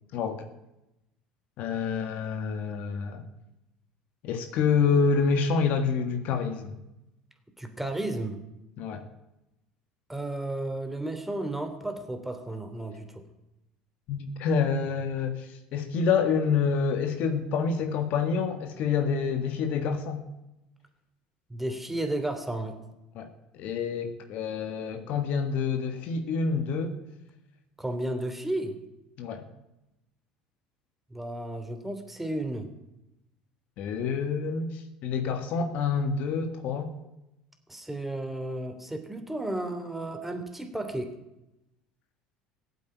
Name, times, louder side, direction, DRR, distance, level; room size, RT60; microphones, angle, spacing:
voice 1, 0.1-0.4 1.6-3.2 4.2-6.8 8.8-9.1 14.1-20.2 23.1-23.3 23.5-26.9 29.2-29.4 33.8-36.9, left 5 dB, 60° left, 7 dB, 1.7 m, -27 dB
voice 2, 7.6-8.4 10.1-13.2 21.5-22.8 27.8-28.8 31.1-32.7 37.7-41.1, right 1 dB, 5° right, 6 dB, 3.1 m, -33 dB
15.5 x 8.4 x 9.2 m, 0.92 s
hypercardioid pair, 70°, 3 cm